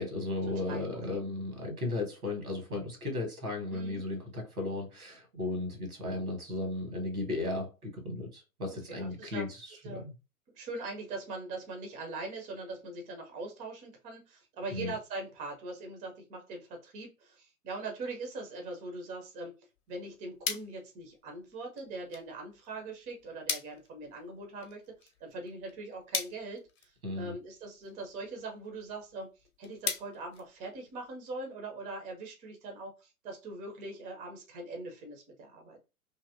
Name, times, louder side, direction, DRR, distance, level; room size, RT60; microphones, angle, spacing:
voice 1, 0.0-10.1 14.7-14.9 27.0-27.3, left 2 dB, 85° right, 1.4 m, -35 dB
voice 2, 3.7-4.0 8.9-9.4 9.8-10.0 10.5-19.5 19.9-24.8 25.2-29.3 29.6-35.8, right 2 dB, 15° right, 0.6 m, -41 dB
sound 1, 19.7-31.2, left 7 dB, 50° left, 0.8 m, -42 dB
2.8 x 2.8 x 2.5 m
figure-of-eight pair, 110°, 43 cm